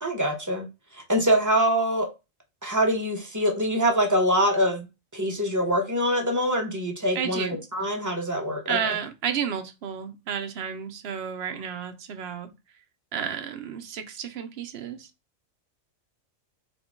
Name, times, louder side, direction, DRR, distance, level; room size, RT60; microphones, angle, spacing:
voice 1, 0.0-0.7 0.9-2.1 2.6-4.9 5.1-9.0, equal, 20° right, 0.5 m, -24 dB
voice 2, 7.1-7.6 8.7-12.5 13.1-15.1, right 8 dB, 60° right, 0.7 m, -31 dB
3.6 x 2.2 x 3.5 m
omnidirectional pair, 1.4 m